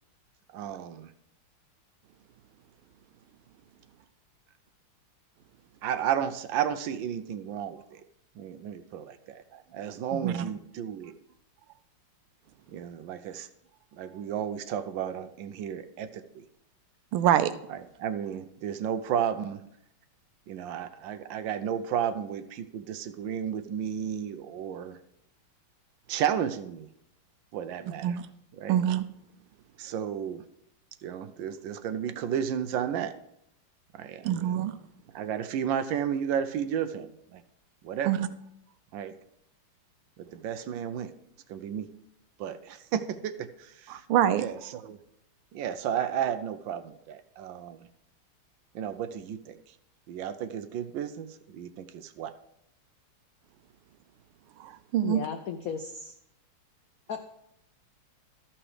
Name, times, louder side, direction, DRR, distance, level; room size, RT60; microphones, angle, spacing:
voice 1, 0.5-1.1 5.8-8.0 8.4-11.1 12.7-13.5 13.9-16.4 17.7-19.6 20.5-25.0 26.1-26.9 27.5-28.2 28.6-28.8 29.8-30.4 31.0-33.1 33.9-34.7 35.1-37.4 37.8-38.1 38.9-39.1 40.2-41.1 41.5-41.9 42.4-44.0 44.4-45.0 45.5-47.9 48.7-49.7 50.1-52.3, right 9 dB, 75° right, 11 dB, 1.2 m, -33 dB
voice 2, 10.1-10.5 17.1-17.5 28.0-28.3 28.7-29.0 34.2-34.8 38.0-38.3 43.9-44.4 54.6-55.2, right 11 dB, 90° right, 13 dB, 1.5 m, -25 dB
voice 3, 55.0-56.1 57.1-57.2, left 7 dB, 90° left, 6 dB, 0.7 m, -35 dB
13.0 x 6.0 x 4.8 m, 0.77 s
omnidirectional pair, 2.3 m